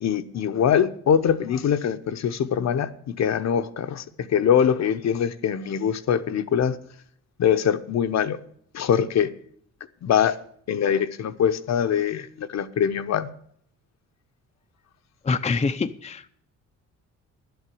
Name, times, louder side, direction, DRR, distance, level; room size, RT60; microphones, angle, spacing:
voice 1, 0.0-6.8 7.4-8.4 8.7-9.3 10.0-10.3 10.7-13.3, left 8 dB, 60° left, 0.9 m, -23 dB
voice 2, 15.2-16.3, left 4 dB, 20° left, 0.6 m, -25 dB
11.5 x 8.1 x 8.4 m
cardioid pair, 90°, 30 cm